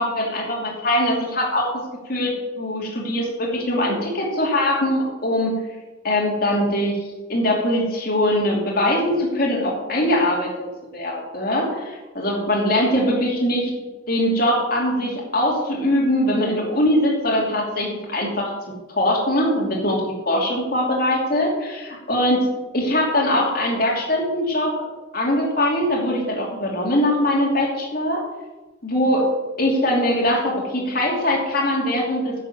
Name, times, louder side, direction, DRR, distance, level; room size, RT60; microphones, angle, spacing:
voice 1, 0.0-1.7 2.1-5.5 6.0-10.5 10.9-13.7 14.1-18.5 18.9-22.4 22.7-24.7 25.1-28.2 28.8-29.3 29.6-32.5, left 1 dB, 50° left, -3 dB, 2.9 m, -22 dB
10.5 x 7.2 x 7.3 m, 1.1 s
head